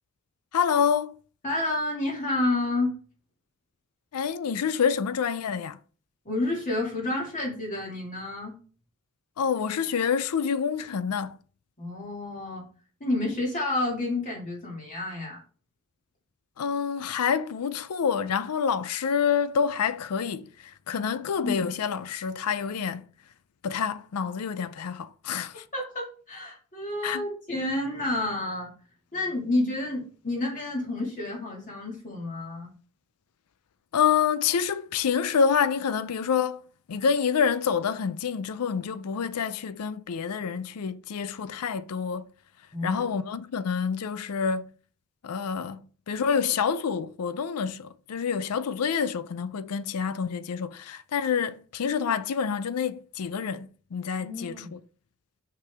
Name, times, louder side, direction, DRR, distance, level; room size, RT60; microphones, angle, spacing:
voice 1, 0.5-1.1 4.1-5.8 9.4-11.4 16.6-20.5 20.9-23.1 23.6-25.6 27.0-27.2 33.9-36.6 36.9-42.3 42.8-44.7 45.2-54.6, left 6 dB, 90° left, 0.5 m, -27 dB
voice 2, 1.4-2.9 6.3-8.6 11.8-12.6 13.0-15.4 21.4-21.7 25.7-28.7 29.1-32.7 42.7-43.2 54.2-54.7, left 2 dB, 35° left, 2.0 m, -30 dB
6.0 x 5.9 x 3.4 m
head